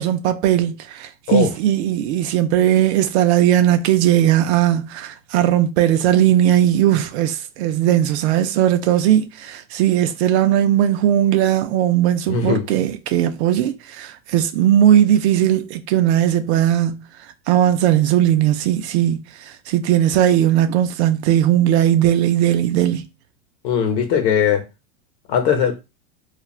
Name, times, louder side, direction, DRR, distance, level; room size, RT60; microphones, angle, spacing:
voice 1, 0.0-17.0 17.5-23.0, right 11 dB, 60° right, 0.5 m, -18 dB
voice 2, 12.3-12.7 23.6-24.6 25.3-25.7, left 7 dB, 55° left, 0.9 m, -19 dB
3.1 x 2.4 x 2.4 m
supercardioid pair, 140°, 39 cm